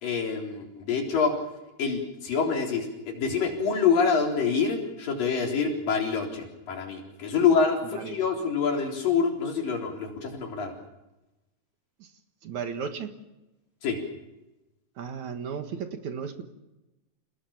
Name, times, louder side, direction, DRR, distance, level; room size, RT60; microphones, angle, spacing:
voice 1, 0.0-1.4 1.8-10.7 13.8-14.0, left 5 dB, 75° left, 1 dB, 5.5 m, -26 dB
voice 2, 12.4-13.2 15.0-16.4, right 6 dB, 60° right, 6 dB, 2.8 m, -35 dB
29.0 x 18.5 x 7.3 m, 1.0 s
omnidirectional pair, 4.0 m